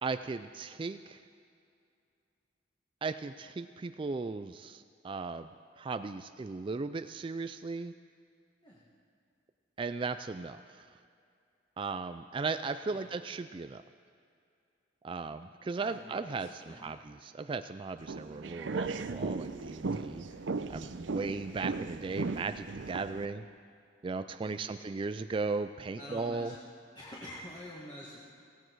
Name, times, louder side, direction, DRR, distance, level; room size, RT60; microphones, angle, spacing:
voice 1, 0.0-1.2 3.0-5.5 5.8-7.9 9.8-10.9 11.8-13.8 15.0-20.3 20.7-23.4 24.0-26.5, right 4 dB, 30° right, 10 dB, 0.3 m, -37 dB
voice 2, 15.8-16.4 16.7-17.0 20.2-20.4 24.4-24.8 26.0-26.5 26.9-28.2, equal, 25° left, -5 dB, 1.9 m, -47 dB
sound 1, 18.0-23.3, right 3 dB, 80° right, 0.6 m, -37 dB
17.5 x 16.0 x 4.7 m, 2.4 s
head